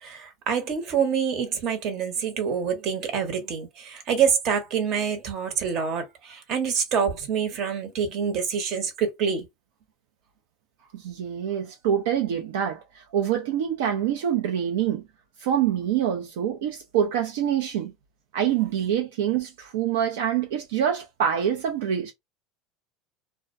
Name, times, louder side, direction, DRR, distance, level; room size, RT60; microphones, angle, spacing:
voice 1, 0.0-9.5, right 7 dB, 50° right, 0.9 m, -26 dB
voice 2, 10.9-15.0 15.4-17.9 18.3-22.1, right 9 dB, 80° right, 0.5 m, -25 dB
2.3 x 2.2 x 2.5 m
supercardioid pair, 110°, 0 cm